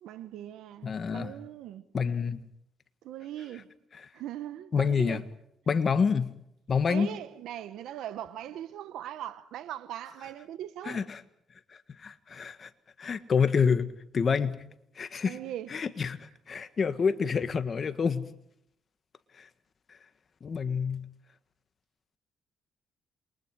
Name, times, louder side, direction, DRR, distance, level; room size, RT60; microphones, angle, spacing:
voice 1, 0.0-1.8 3.0-3.7 4.1-5.2 6.9-11.1 15.2-15.7, right 11 dB, 85° right, 1.3 m, -40 dB
voice 2, 0.8-1.3 1.9-2.4 4.7-5.2 5.7-6.3 6.7-7.1 10.9-11.2 12.0-12.7 13.0-14.6 15.0-15.4 15.7-18.3 19.4-19.5 20.4-21.1, left 6 dB, 45° left, 1.6 m, -27 dB
28.5 x 23.0 x 4.8 m
cardioid pair, 90°, 0 cm